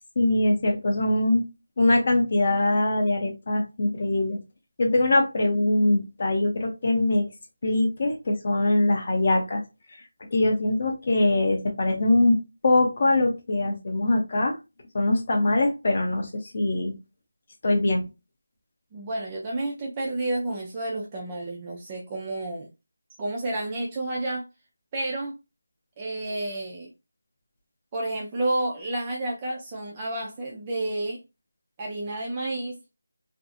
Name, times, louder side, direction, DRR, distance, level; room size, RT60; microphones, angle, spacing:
voice 1, 0.2-1.4 1.8-4.4 4.8-7.3 7.6-9.6 10.3-12.4 12.6-14.6 14.9-16.9 17.6-18.1, left 2 dB, 30° left, 0.6 m, -22 dB
voice 2, 18.9-22.7 23.2-24.5 24.9-25.4 26.0-26.9 27.9-31.2 31.8-32.8, right 2 dB, 15° right, 0.3 m, -30 dB
2.5 x 2.4 x 2.5 m
figure-of-eight pair, 175°, 0 cm